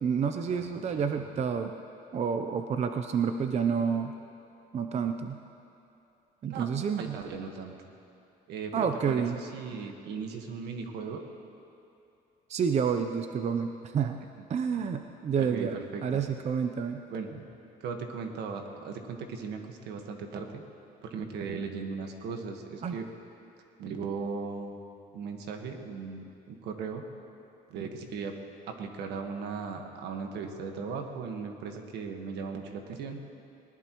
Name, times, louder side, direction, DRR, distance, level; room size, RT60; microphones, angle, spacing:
voice 1, 0.0-1.7 2.1-4.1 4.7-5.4 6.4-7.2 8.7-9.4 12.5-14.2 14.5-17.0 22.8-23.0, right 6 dB, 40° right, 6 dB, 0.7 m, -29 dB
voice 2, 7.0-7.7 8.5-11.2 14.7-14.9 15.4-16.2 17.1-17.4 17.8-20.6 21.0-23.1 23.8-24.8 25.1-27.0 27.7-28.3 28.7-33.2, right 5 dB, 80° right, 4 dB, 1.5 m, -37 dB
20.0 x 19.0 x 3.1 m, 2.7 s
cardioid pair, 110°, 17 cm